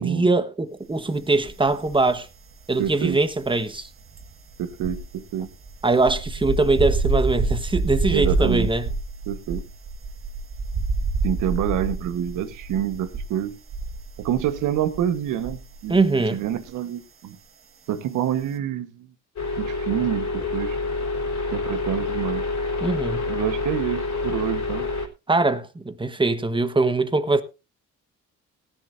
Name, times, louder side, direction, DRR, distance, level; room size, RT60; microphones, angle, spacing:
voice 1, 0.0-2.3 2.7-3.9 5.8-8.9 15.9-16.4 22.8-23.3 25.3-27.4, right 3 dB, 15° right, 1.3 m, -22 dB
sound 1, 1.4-2.2 2.5-16.0 16.3-16.5, right 3 dB, 45° right, 1.7 m, -28 dB
voice 2, 2.8-3.2 4.6-5.5 8.1-8.7 9.3-9.6 11.2-13.6 14.2-16.0 16.3-17.4 17.9-19.1 19.6-20.8 21.5-22.4 23.3-24.9, right 10 dB, 85° right, 1.4 m, -27 dB
sound 2, 19.4-25.1, left 3 dB, 60° left, 3.6 m, -27 dB
18.5 x 10.5 x 2.7 m
cardioid pair, 90°, 30 cm